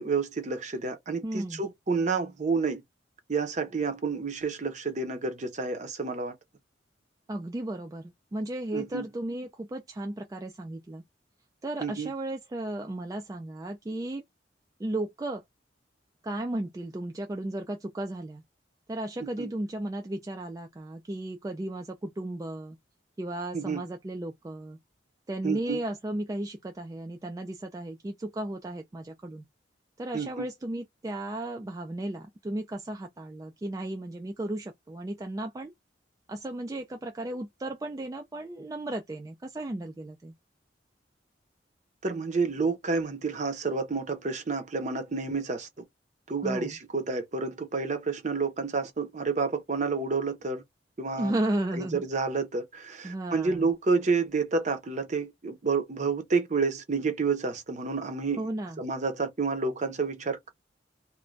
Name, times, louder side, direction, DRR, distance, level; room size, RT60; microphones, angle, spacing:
voice 1, 0.0-2.8 3.3-6.3 8.7-9.0 11.8-12.1 19.4-19.5 23.5-23.8 25.4-25.8 30.1-30.5 42.0-45.7 46.3-50.6 51.0-51.4 51.7-58.5 58.8-60.5, right 4 dB, 40° right, 0.6 m, -29 dB
voice 2, 1.2-1.6 7.3-11.0 11.6-14.2 14.8-15.4 16.2-18.4 18.9-22.8 23.2-24.8 25.3-29.4 30.0-35.7 36.3-40.3 46.4-46.8 51.2-52.0 53.0-53.7 58.4-58.8, right 1 dB, 20° right, 0.3 m, -34 dB
2.4 x 2.2 x 3.0 m
head